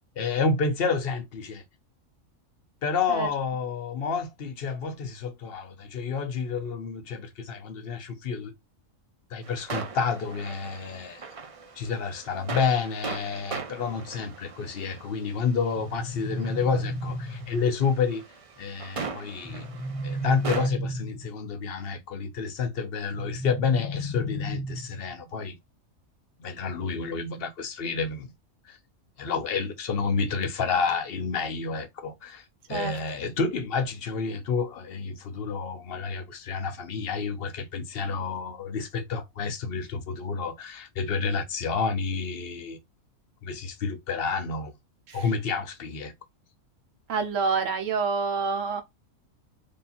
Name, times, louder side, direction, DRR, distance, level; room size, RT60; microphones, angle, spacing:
voice 1, 0.2-1.6 2.8-8.5 9.3-11.3 11.8-18.2 18.6-19.7 20.0-25.6 26.4-28.3 28.7-28.8 29.2-42.8 43.4-44.7 45.1-46.1, left 5 dB, 55° left, 0.8 m, -29 dB
sound 1, 9.4-20.7, right 5 dB, 50° right, 0.4 m, -39 dB
sound 2, 15.8-17.8 19.4-21.5 23.1-25.1, equal, 10° left, 0.6 m, -33 dB
voice 2, 47.1-48.8, right 5 dB, 65° right, 1.2 m, -27 dB
3.4 x 2.7 x 4.2 m
omnidirectional pair, 1.5 m